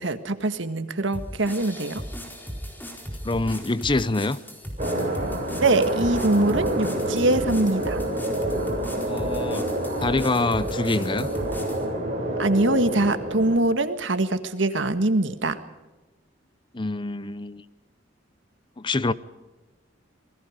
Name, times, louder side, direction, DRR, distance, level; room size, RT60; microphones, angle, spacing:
voice 1, 0.0-2.0 5.6-8.0 12.4-15.6, right 2 dB, 80° right, 1.7 m, -23 dB
sound 1, 1.1-11.8, equal, 10° left, 4.2 m, -37 dB
voice 2, 3.2-4.4 9.1-9.7 10.0-11.3 16.7-17.6 18.8-19.1, left 2 dB, 25° left, 0.7 m, -25 dB
sound 2, 4.8-13.6, right 1 dB, 35° right, 6.8 m, -28 dB
27.0 x 20.5 x 5.2 m
head